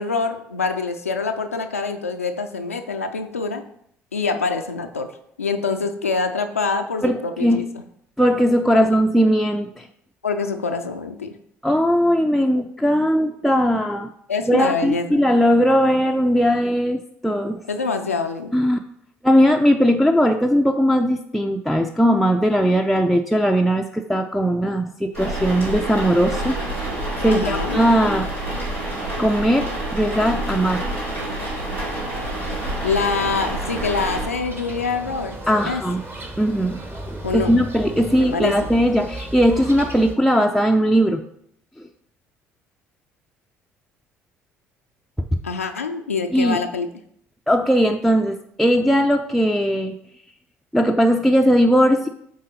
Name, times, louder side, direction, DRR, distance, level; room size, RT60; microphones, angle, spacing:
voice 1, 0.0-3.6 4.1-5.1 5.4-7.7 8.7-8.8 10.2-11.4 14.3-15.2 17.7-18.5 27.2-27.8 32.8-35.4 35.7-35.8 37.2-37.5 38.2-38.5 45.4-46.9, left 4 dB, 90° left, 6 dB, 0.4 m, -25 dB
voice 2, 7.0-7.6 8.2-9.9 11.6-14.1 14.5-17.6 18.5-18.8 19.2-28.4 29.2-30.9 35.5-36.0 36.4-41.2 45.2-45.3 46.3-46.6 47.5-50.0 50.7-52.1, equal, ahead, 2 dB, 0.4 m, -19 dB
sound 1, 25.1-34.3, right 1 dB, 85° right, 2.5 m, -28 dB
sound 2, 32.2-40.1, right 1 dB, 30° right, 1.3 m, -35 dB
7.5 x 3.7 x 4.0 m, 0.69 s
figure-of-eight pair, 55°, 7 cm